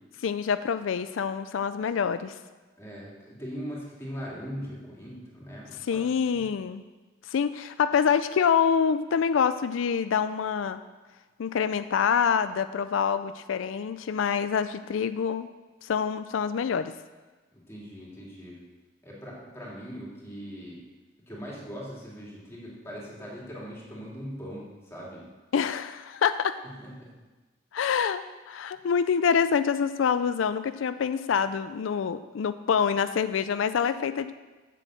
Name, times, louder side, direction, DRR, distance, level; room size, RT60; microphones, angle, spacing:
voice 1, 0.2-2.4 5.8-6.8 7.3-10.8 11.4-15.5 15.8-16.9 25.5-26.6 27.7-34.3, left 7 dB, 85° left, 12 dB, 0.4 m, -26 dB
voice 2, 2.8-6.4 17.5-18.6 19.0-20.8 21.3-25.2 26.8-27.1, equal, 15° left, -5 dB, 2.8 m, -40 dB
7.6 x 7.6 x 7.6 m, 1.3 s
head